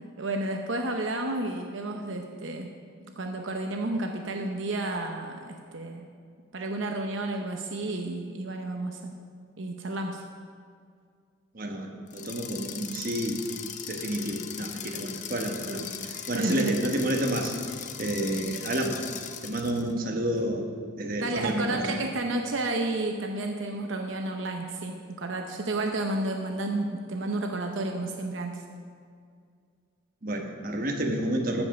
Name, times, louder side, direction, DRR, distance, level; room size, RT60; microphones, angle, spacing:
voice 1, 0.0-2.7 3.0-6.1 6.5-9.0 9.6-10.2 16.3-16.8 21.2-28.6, right 2 dB, 75° right, 3 dB, 0.8 m, -31 dB
voice 2, 11.5-13.4 13.9-17.5 18.0-19.0 19.4-20.7 20.9-22.0 30.2-31.6, right 1 dB, 45° right, 2 dB, 1.2 m, -30 dB
sound 1, 12.1-19.9, left 9 dB, 40° left, 0.5 m, -39 dB
15.0 x 5.3 x 5.9 m, 2.1 s
head